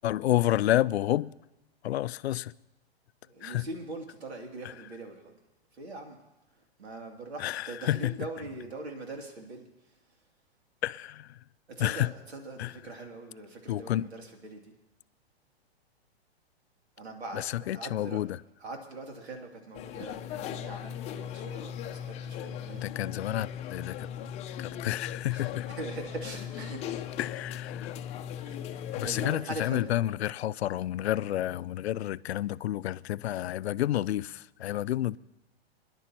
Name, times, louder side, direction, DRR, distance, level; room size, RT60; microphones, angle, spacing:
voice 1, 0.0-1.4 1.8-2.5 3.4-3.7 4.6-4.7 7.4-8.1 10.8-11.4 11.8-12.1 12.6-12.8 13.7-14.1 17.3-18.4 22.7-24.1 24.6-25.7 27.2-28.0 29.0-35.2, left 13 dB, 80° left, 0.5 m, -30 dB
voice 2, 3.2-5.4 5.7-6.2 6.8-9.7 11.7-14.7 17.0-18.2 18.6-22.8 25.3-25.5 25.8-27.0 28.5-28.7 29.0-30.1, right 2 dB, 85° right, 2.8 m, -42 dB
sound 1, 19.7-29.3, left 10 dB, 20° left, 0.6 m, -38 dB
25.0 x 10.5 x 3.0 m
hypercardioid pair, 135°, 32 cm